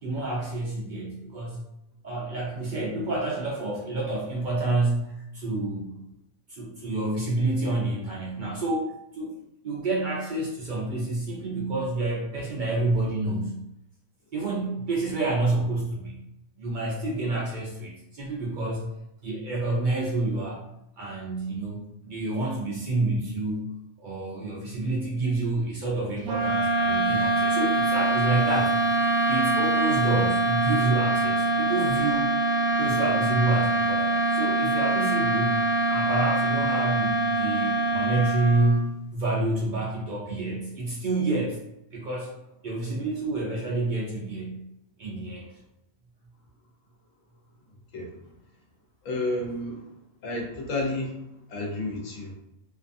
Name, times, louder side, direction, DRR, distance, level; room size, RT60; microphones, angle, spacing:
voice 1, 0.0-1.6 2.0-6.0 6.5-9.3 9.6-13.6 14.3-16.2 16.6-18.9 19.2-20.6 21.0-23.6 24.0-32.4 32.8-35.6 35.9-41.6 41.9-42.4 42.6-44.6 45.0-45.4, right 2 dB, 60° right, -3 dB, 0.5 m, -28 dB
sound 1, 26.2-38.9, right 2 dB, 80° right, 1.0 m, -24 dB
voice 2, 49.0-49.8 50.2-51.1 51.5-52.3, left 2 dB, 75° left, -2 dB, 1.1 m, -30 dB
2.7 x 2.3 x 2.5 m, 0.83 s
omnidirectional pair, 1.4 m